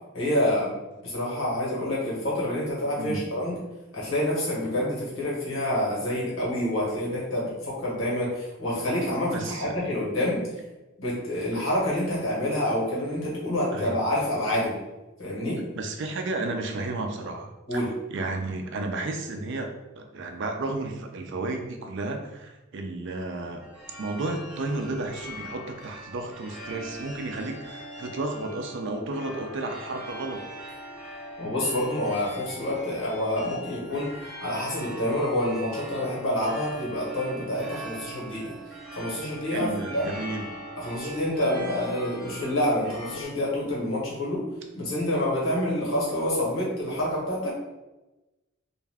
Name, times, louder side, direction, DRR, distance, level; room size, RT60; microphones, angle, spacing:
voice 1, 0.1-0.7 1.0-3.5 3.9-10.5 11.0-14.8 15.2-15.6 17.7-17.9 31.4-34.1 34.4-38.5 38.9-40.1 40.8-44.5 44.7-47.5, left 1 dB, 85° left, -5 dB, 1.2 m, -27 dB
voice 2, 9.3-9.9 13.7-14.0 15.6-17.8 18.1-23.6 24.0-30.4 39.5-40.5, right 2 dB, 65° right, 4 dB, 0.4 m, -33 dB
sound 1, 23.6-43.2, equal, 5° right, 0.6 m, -41 dB
2.5 x 2.2 x 3.4 m, 1.1 s
head